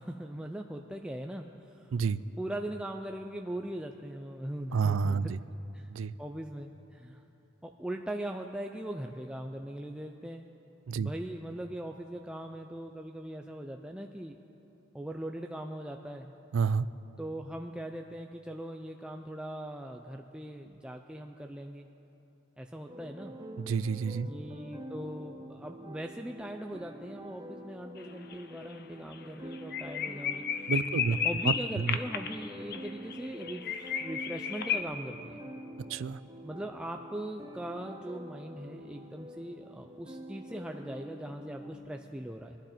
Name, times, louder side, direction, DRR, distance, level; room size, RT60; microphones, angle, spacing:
voice 1, 0.0-1.9 2.4-5.4 5.7-5.9 6.2-7.2 7.6-10.5 11.0-14.4 14.9-16.3 17.2-21.9 22.6-23.4 24.3-30.4 31.0-35.4 36.4-42.6, right 1 dB, 5° right, 3 dB, 0.4 m, -40 dB
voice 2, 4.7-5.4 5.9-6.1 10.9-11.1 16.5-16.9 23.6-24.3 30.7-31.2 31.4-32.0 35.9-36.2, right 5 dB, 80° right, 16 dB, 0.4 m, -29 dB
sound 1, 22.9-41.7, equal, 20° right, 0.9 m, -46 dB
sound 2, 28.0-28.3 28.6-28.7 29.1-29.2 29.5-34.8, left 7 dB, 50° left, 0.7 m, -33 dB
22.5 x 11.5 x 4.4 m, 2.9 s
head